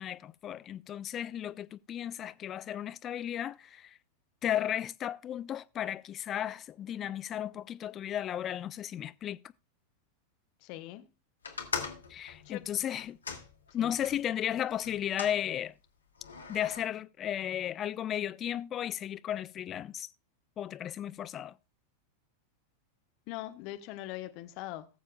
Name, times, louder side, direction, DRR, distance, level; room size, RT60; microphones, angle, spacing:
voice 1, 0.0-4.0 4.4-9.4 12.1-13.2 13.7-15.7 16.5-20.1 20.6-21.5, left 10 dB, 30° left, 0.5 m, -34 dB
voice 2, 10.6-11.1 12.4-12.7 13.8-13.9 23.3-24.9, left 15 dB, 45° left, 1.1 m, -41 dB
sound 1, 11.4-14.2 14.8-15.4 16.2-16.8, left 5 dB, 75° left, 1.6 m, -40 dB
19.0 x 7.1 x 2.4 m
figure-of-eight pair, 90°, 0 cm